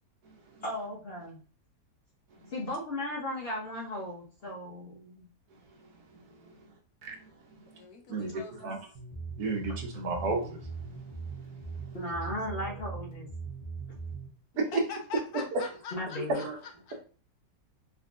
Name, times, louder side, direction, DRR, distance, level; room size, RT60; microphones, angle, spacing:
voice 1, 0.6-1.4 2.5-5.3 9.7-9.8 11.9-13.3 15.9-16.4, left 1 dB, 45° left, -3 dB, 0.9 m, -36 dB
voice 2, 7.8-8.8 12.2-12.4 12.7-12.8 14.9-17.0, left 5 dB, 70° left, 4 dB, 1.0 m, -44 dB
sound 1, 8.9-14.3, right 4 dB, 40° right, 0.7 m, -40 dB
voice 3, 9.4-10.6 14.6-14.7 15.5-15.6 16.3-16.6, right 3 dB, 65° right, 1 dB, 1.2 m, -31 dB
3.6 x 2.8 x 2.4 m, 0.40 s
omnidirectional pair, 1.8 m